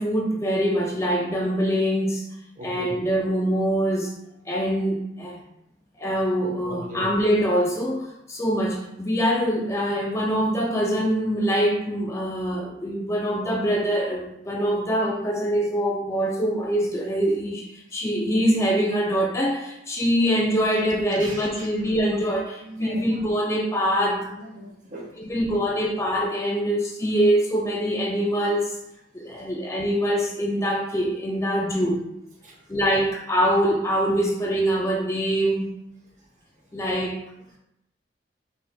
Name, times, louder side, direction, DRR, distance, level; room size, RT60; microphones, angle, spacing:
voice 1, 0.0-2.3 2.6-4.1 4.5-5.4 6.0-17.7 17.9-24.3 25.2-28.8 29.1-32.0 32.7-35.7 36.7-37.2, equal, 15° left, -1 dB, 0.4 m, -24 dB
voice 2, 2.6-2.9 6.6-7.1 21.1-21.7 22.1-22.2 22.6-23.2 23.9-25.1 29.3-29.5 32.4-32.6, right 1 dB, 45° right, -1 dB, 1.1 m, -39 dB
5.4 x 3.9 x 2.3 m, 0.85 s
head